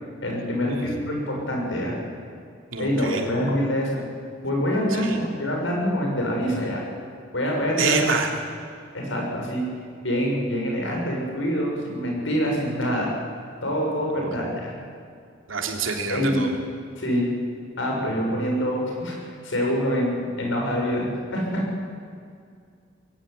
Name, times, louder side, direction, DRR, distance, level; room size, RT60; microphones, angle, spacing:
voice 1, 0.2-2.0 2.8-4.0 4.4-6.8 7.3-8.1 8.9-9.6 10.0-13.1 13.6-14.7 16.1-16.5 17.0-17.3 17.8-19.2 19.4-21.6, equal, 70° left, -1 dB, 7.2 m, -25 dB
voice 2, 2.7-3.3 4.9-5.2 7.8-8.3 14.2-14.5 15.5-16.5, right 4 dB, 85° right, 3 dB, 3.2 m, -27 dB
21.5 x 16.5 x 10.0 m, 2.3 s
head